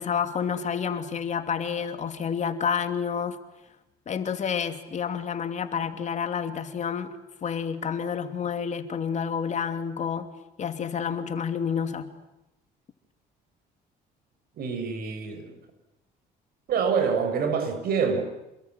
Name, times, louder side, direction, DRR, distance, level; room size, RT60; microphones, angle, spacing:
voice 1, 0.0-3.4 4.1-7.1 7.4-10.3 10.6-12.1, left 7 dB, 45° left, 2.8 m, -29 dB
voice 2, 14.6-15.6 16.7-18.2, right 6 dB, 65° right, 6.6 m, -26 dB
28.5 x 21.5 x 9.6 m
cardioid pair, 110°, 17 cm